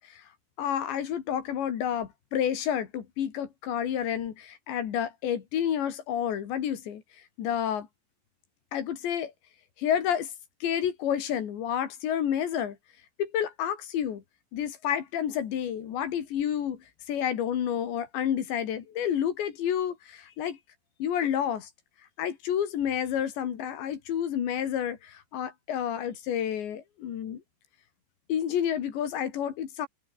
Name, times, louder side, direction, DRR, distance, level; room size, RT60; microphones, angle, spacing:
voice 1, 0.6-7.0 7.4-7.9 8.7-9.3 9.8-10.3 10.6-12.8 13.2-14.2 14.5-20.6 21.0-21.7 22.2-27.4 28.3-29.9, left 9 dB, 70° left, 4.7 m, -30 dB
omnidirectional pair, 5.4 m